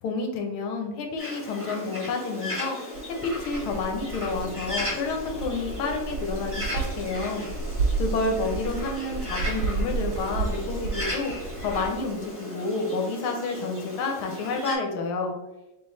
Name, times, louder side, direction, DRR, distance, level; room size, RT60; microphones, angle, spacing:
voice 1, 0.0-15.4, left 3 dB, 85° left, 3 dB, 1.7 m, -30 dB
Bird, 1.2-14.7, left 1 dB, 10° right, 1.1 m, -36 dB
sound 1, 2.9-12.2, right 4 dB, 60° right, 1.2 m, -32 dB
3.8 x 3.2 x 4.0 m, 1.0 s
omnidirectional pair, 2.2 m